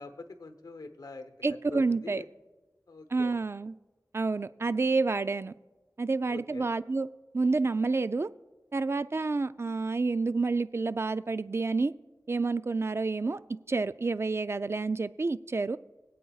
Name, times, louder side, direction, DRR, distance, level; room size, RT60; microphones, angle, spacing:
voice 1, 0.0-1.4 1.7-2.3 2.9-3.3 6.3-6.7, left 3 dB, 85° left, 8 dB, 0.9 m, -44 dB
voice 2, 1.4-2.2 3.1-3.7 4.1-5.5 6.0-7.1 7.3-8.3 8.7-11.9 12.3-13.4 13.7-15.8, right 3 dB, 40° right, 14 dB, 0.3 m, -29 dB
25.5 x 8.5 x 2.4 m, 1.2 s
wide cardioid pair, 65°, 6 cm